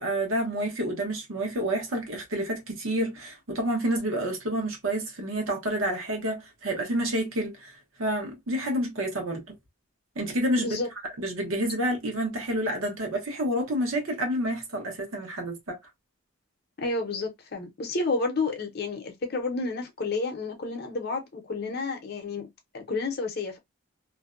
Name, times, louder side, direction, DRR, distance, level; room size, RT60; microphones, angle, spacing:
voice 1, 0.0-7.7 8.0-9.6 10.2-10.8 11.2-15.8, right 1 dB, 70° right, 1.0 m, -29 dB
voice 2, 10.6-10.9 16.8-22.5 22.7-23.6, left 3 dB, 45° left, 0.7 m, -30 dB
2.6 x 2.1 x 2.4 m
head